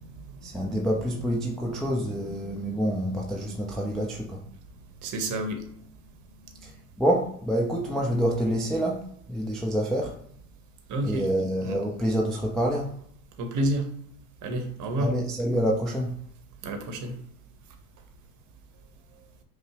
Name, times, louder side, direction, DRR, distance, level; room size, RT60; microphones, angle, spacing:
voice 1, 0.4-4.4 6.6-6.7 7.0-9.0 9.3-10.1 11.0-12.9 15.0-16.1, equal, ahead, -2 dB, 0.3 m, -27 dB
voice 2, 5.0-5.6 10.9-11.3 11.6-11.8 13.4-13.9 14.4-15.1 16.6-17.1, right 1 dB, 40° right, 5 dB, 0.9 m, -29 dB
5.2 x 2.0 x 2.9 m, 0.63 s
hypercardioid pair, 80°, 45 cm